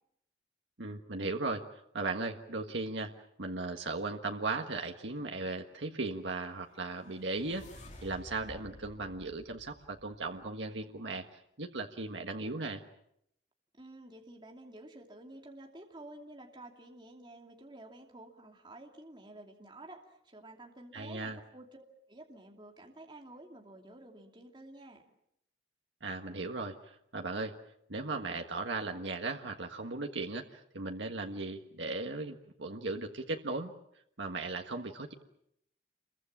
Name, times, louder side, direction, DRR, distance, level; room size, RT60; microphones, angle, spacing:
voice 1, 0.8-1.6 1.9-3.1 3.4-7.7 8.0-12.8 20.9-21.4 26.0-27.6 27.9-33.7 34.2-35.1, right 3 dB, 85° right, 3 dB, 1.5 m, -37 dB
sound 1, 6.5-10.7, left 1 dB, 40° left, 3.1 m, -53 dB
voice 2, 13.8-25.0, right 1 dB, 25° right, 1 dB, 2.7 m, -51 dB
28.5 x 23.0 x 7.3 m, 0.77 s
head